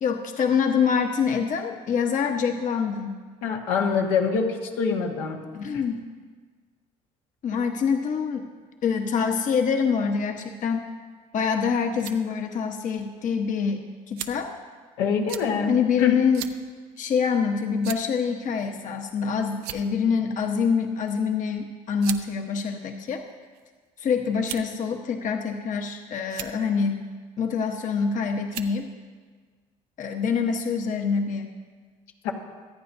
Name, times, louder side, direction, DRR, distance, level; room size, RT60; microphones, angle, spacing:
voice 1, 0.0-3.2 5.5-6.1 7.4-8.4 8.8-10.9 11.3-14.5 15.7-16.4 17.0-23.2 24.0-27.0 27.4-28.9 30.0-31.6, left 6 dB, 55° left, 3 dB, 1.2 m, -25 dB
voice 2, 3.4-5.4 15.0-16.2 32.2-32.3, left 5 dB, 85° left, 1 dB, 1.5 m, -25 dB
sound 1, 11.9-12.2 13.0-13.1 14.2-14.5 15.3-15.5 16.3-16.6 17.0-17.1 17.8-18.2 19.1-19.2 19.5-20.0 21.1-21.3 22.0-22.3 23.1-23.7 24.4-24.8 25.6-25.9 26.2-26.5 27.7-28.0 28.5-28.8, right 12 dB, 85° right, 0.7 m, -36 dB
25.5 x 9.4 x 2.7 m, 1.5 s
supercardioid pair, 70°, 16 cm